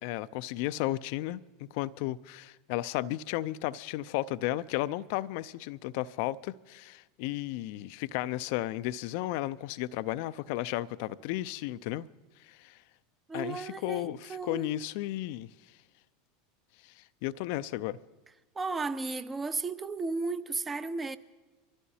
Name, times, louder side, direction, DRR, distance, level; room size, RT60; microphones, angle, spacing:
voice 1, 0.0-12.1 12.4-12.8 13.3-15.5 16.8-18.0, left 15 dB, 60° left, 0.5 m, -34 dB
voice 2, 13.3-14.7 18.5-21.2, right 3 dB, 20° right, 0.8 m, -34 dB
24.5 x 15.0 x 2.8 m
hypercardioid pair, 85°, 0 cm